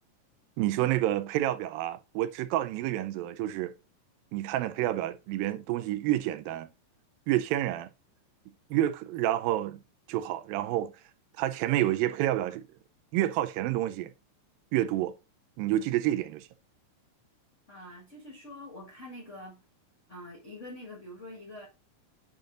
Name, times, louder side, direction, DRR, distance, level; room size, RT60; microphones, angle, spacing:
voice 1, 0.6-3.7 4.3-6.7 7.3-7.9 8.7-9.8 10.1-10.9 11.4-12.6 13.1-14.1 14.7-15.1 15.6-16.5, right 14 dB, 85° right, 2.3 m, -29 dB
voice 2, 17.7-19.6 20.1-21.7, left 1 dB, 65° left, 0.7 m, -45 dB
8.6 x 3.9 x 3.7 m
omnidirectional pair, 4.1 m